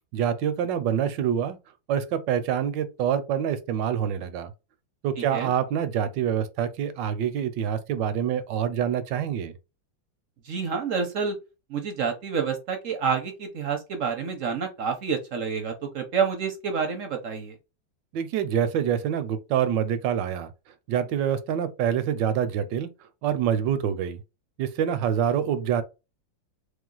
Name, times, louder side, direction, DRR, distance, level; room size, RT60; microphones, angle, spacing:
voice 1, 0.1-1.6 1.9-4.5 5.0-9.5 18.1-20.5 20.9-22.9 23.2-24.2 24.6-25.8, right 9 dB, 80° right, 1.2 m, -26 dB
voice 2, 10.5-11.4 11.7-17.5, right 6 dB, 60° right, 0.9 m, -28 dB
3.4 x 3.1 x 3.8 m
omnidirectional pair, 2.0 m